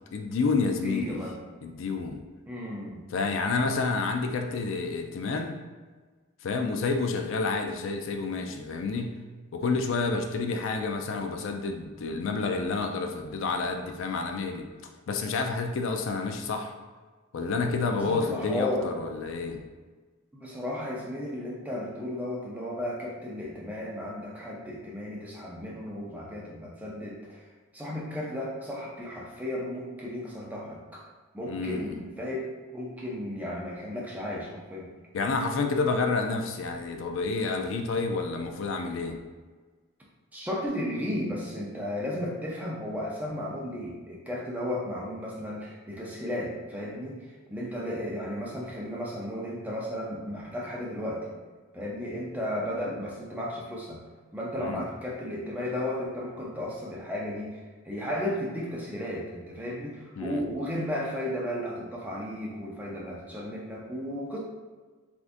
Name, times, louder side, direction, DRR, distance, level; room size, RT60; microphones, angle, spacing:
voice 1, 0.1-1.2 1.6-2.2 3.1-5.6 6.4-9.2 9.5-14.7 15.1-16.7 17.3-19.6 31.5-32.0 35.1-39.2 54.6-54.8 60.2-60.4, left 4 dB, 60° left, 4 dB, 0.3 m, -29 dB
voice 2, 0.8-1.4 2.5-3.1 17.9-18.9 20.3-27.4 27.7-31.0 31.3-32.5 32.7-34.9 40.3-51.4 51.7-54.0 54.3-64.4, left 1 dB, 5° right, -4 dB, 0.5 m, -34 dB
3.5 x 2.5 x 2.5 m, 1.4 s
head